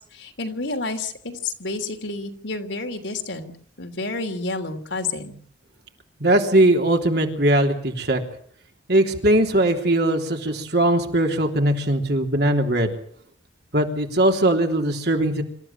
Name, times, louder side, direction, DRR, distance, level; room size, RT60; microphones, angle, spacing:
voice 1, 0.1-3.5 3.8-5.4, left 3 dB, 75° left, 5 dB, 3.2 m, -30 dB
voice 2, 6.2-8.2 8.9-13.0 13.7-15.4, right 1 dB, 55° right, 3 dB, 3.4 m, -20 dB
26.0 x 14.0 x 9.0 m, 0.62 s
head